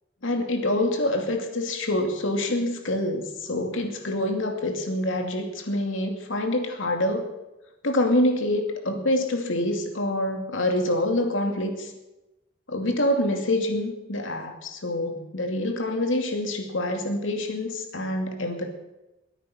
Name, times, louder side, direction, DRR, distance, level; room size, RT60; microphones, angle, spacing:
voice 1, 0.2-7.3 7.8-11.9 12.7-18.7, left 1 dB, 90° left, 4 dB, 2.6 m, -26 dB
22.0 x 9.8 x 5.9 m, 1.0 s
head